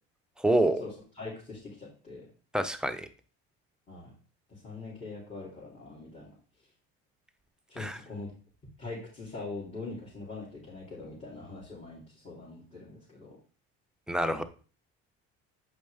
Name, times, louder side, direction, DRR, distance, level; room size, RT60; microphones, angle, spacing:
voice 1, 0.4-0.8 2.5-3.1 7.8-8.0 14.1-14.4, right 1 dB, ahead, 7 dB, 0.7 m, -27 dB
voice 2, 1.2-2.3 3.9-4.1 4.5-6.4 7.7-8.3 8.8-13.4, left 3 dB, 25° left, -7 dB, 3.0 m, -42 dB
8.0 x 5.1 x 3.4 m, 0.38 s
supercardioid pair, 95°, 30 cm